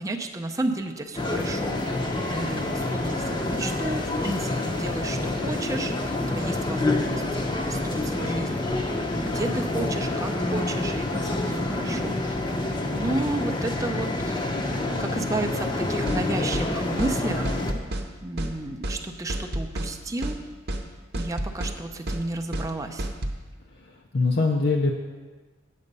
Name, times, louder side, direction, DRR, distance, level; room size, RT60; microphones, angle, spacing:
voice 1, 0.0-1.9 2.3-8.7 9.1-12.3 12.9-17.6 18.2-20.4 21.1-23.1, right 2 dB, 15° right, 4 dB, 0.5 m, -32 dB
sound 1, 1.2-17.7, left 2 dB, 20° left, 0.7 m, -27 dB
sound 2, 16.1-16.2 16.5-16.7 17.0-17.1 17.4-18.1 18.4-18.5 18.8-19.0 19.3-19.9 20.2-20.4 20.7-20.8 21.1-21.8 22.1-22.2 22.5-22.7 23.0-23.4, right 1 dB, 50° right, 0.8 m, -30 dB
voice 2, 23.7-24.9, left 3 dB, 55° left, 1 dB, 0.6 m, -24 dB
8.3 x 7.8 x 5.3 m, 1.3 s
head